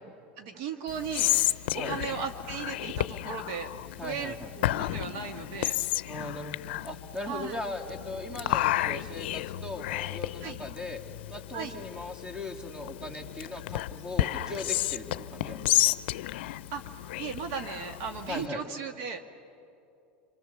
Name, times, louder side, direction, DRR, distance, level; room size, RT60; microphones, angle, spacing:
voice 1, 0.4-5.8 7.3-7.6 10.4-10.6 11.5-11.7 16.7-19.2, right 6 dB, 60° right, 6 dB, 1.6 m, -37 dB
Whispering, 0.9-18.5, left 15 dB, 75° left, 0.5 m, -32 dB
voice 2, 4.0-4.5 6.1-6.6 6.8-11.0 11.3-16.0 18.3-18.7, left 2 dB, 15° right, 4 dB, 2.5 m, -39 dB
26.5 x 24.0 x 7.0 m, 2.6 s
supercardioid pair, 115°, 6 cm